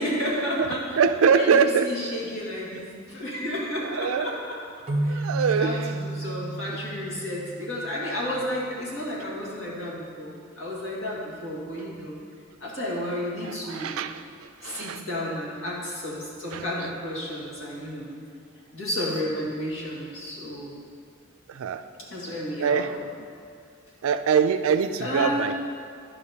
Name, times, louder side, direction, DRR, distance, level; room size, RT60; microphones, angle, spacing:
voice 1, 0.0-0.8 1.3-4.6 5.0-5.2 5.5-12.2 12.6-14.0 14.6-18.1 18.7-20.8 22.1-22.9 25.0-25.5, left 1 dB, 65° left, -5 dB, 1.8 m, -32 dB
voice 2, 1.0-1.9 2.8-2.9 3.8-4.3 5.1-5.9 13.4-14.2 14.6-15.0 16.5-16.6 21.5-21.8 22.6-23.0 24.0-25.6, right 6 dB, 75° right, 9 dB, 0.4 m, -23 dB
sound 1, 4.9-8.4, right 2 dB, 35° right, 0.8 m, -32 dB
11.5 x 5.4 x 2.8 m, 2.3 s
head